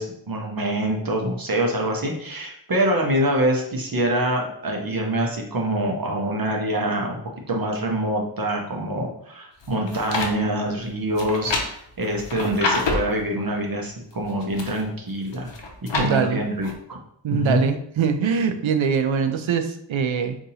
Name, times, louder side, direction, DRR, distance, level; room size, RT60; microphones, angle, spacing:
voice 1, 0.0-7.2 7.5-15.5 15.8-17.0 17.3-17.6, right 1 dB, 50° right, 0 dB, 0.8 m, -25 dB
sound 1, 9.6-10.3 11.2-13.2 14.1-14.8 15.3-16.1 16.6-16.7, left 3 dB, 65° left, 0.7 m, -27 dB
voice 2, 15.9-16.4 17.2-20.4, right 6 dB, 80° right, 8 dB, 0.5 m, -23 dB
2.7 x 2.6 x 4.0 m, 0.70 s
wide cardioid pair, 45°, 46 cm